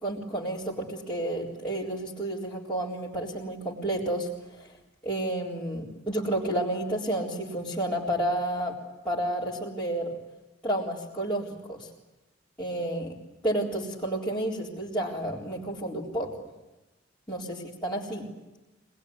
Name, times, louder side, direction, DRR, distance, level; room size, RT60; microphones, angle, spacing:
voice 1, 0.0-4.7 5.0-8.8 9.0-10.1 10.6-11.9 12.6-13.2 13.4-16.4 17.3-18.3, right 1 dB, 5° left, -9 dB, 3.9 m, -31 dB
26.0 x 20.0 x 9.6 m, 1.1 s
head